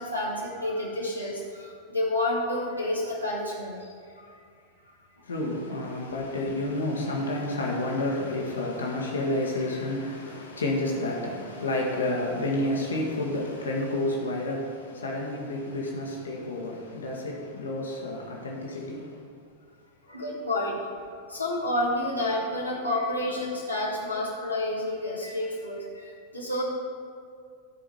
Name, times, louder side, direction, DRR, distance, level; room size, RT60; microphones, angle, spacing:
voice 1, 0.0-3.9 4.1-4.4 4.9-5.0 20.1-20.8 21.1-26.6, left 1 dB, 90° left, 1.4 m, -30 dB
voice 2, 5.2-19.2, left 1 dB, 70° left, 1.4 m, -30 dB
13.0 x 5.0 x 5.7 m
figure-of-eight pair, 90°, 0 cm